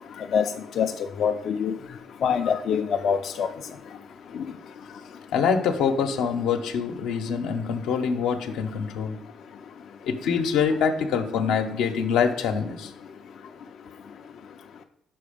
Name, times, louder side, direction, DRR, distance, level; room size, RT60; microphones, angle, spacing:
voice 1, 1.2-1.7 2.2-3.5, left 7 dB, 60° left, 5 dB, 0.4 m, -24 dB
voice 2, 5.3-9.2 10.0-12.9, left 6 dB, 85° left, 5 dB, 0.8 m, -25 dB
6.0 x 4.6 x 5.0 m, 0.82 s
cardioid pair, 105°, 0 cm